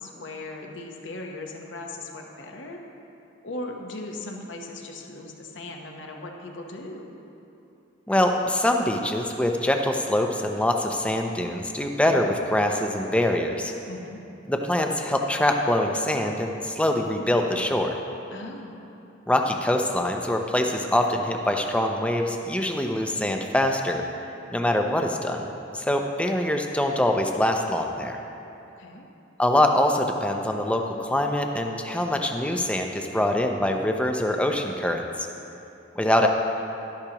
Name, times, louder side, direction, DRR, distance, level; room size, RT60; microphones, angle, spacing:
voice 1, 0.0-2.8 3.4-7.1 13.9-14.2 18.3-18.8 28.8-29.0, left 2 dB, 65° left, 2 dB, 1.0 m, -38 dB
voice 2, 8.1-13.7 14.5-18.0 19.3-24.0 24.5-28.2 29.4-35.3 36.0-36.3, left 1 dB, 5° left, 3 dB, 0.5 m, -24 dB
12.0 x 11.5 x 2.9 m, 2.9 s
head